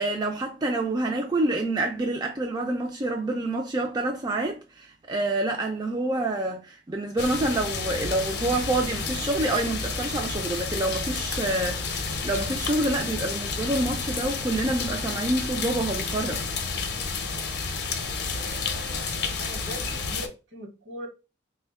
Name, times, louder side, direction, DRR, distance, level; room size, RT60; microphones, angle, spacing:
voice 1, 0.0-16.4, right 2 dB, 20° right, 0.3 m, -27 dB
sound 1, 7.2-20.3, left 4 dB, 55° left, 0.6 m, -30 dB
voice 2, 18.2-21.1, equal, 65° right, 1.0 m, -41 dB
3.4 x 2.2 x 3.4 m
head